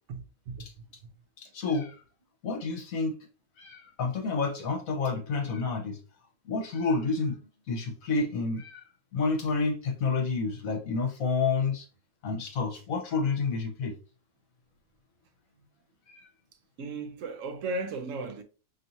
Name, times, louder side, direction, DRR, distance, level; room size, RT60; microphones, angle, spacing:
voice 1, 0.1-0.7 1.0-1.1 16.8-18.4, right 3 dB, 65° right, 0.9 m, -36 dB
voice 2, 1.4-2.0 2.4-3.1 3.6-6.0 6.4-7.4 7.7-8.9 9.1-11.9 12.2-13.9 16.1-16.3, left 4 dB, 65° left, 1.4 m, -29 dB
4.3 x 3.0 x 2.7 m
omnidirectional pair, 1.6 m